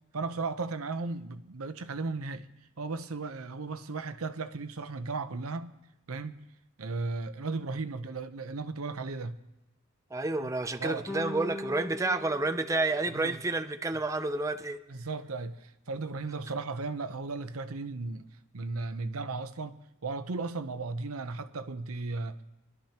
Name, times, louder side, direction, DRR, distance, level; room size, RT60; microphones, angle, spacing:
voice 1, 0.1-2.5 2.8-5.8 6.1-6.4 6.8-9.4 10.4-10.5 10.8-11.1 13.1-13.4 14.9-18.3 18.5-22.4, right 3 dB, 80° right, 0.8 m, -35 dB
voice 2, 10.1-14.8, right 2 dB, 15° right, 0.4 m, -30 dB
sound 1, 11.1-13.6, left 1 dB, 5° left, 2.1 m, -41 dB
24.5 x 12.0 x 2.9 m
head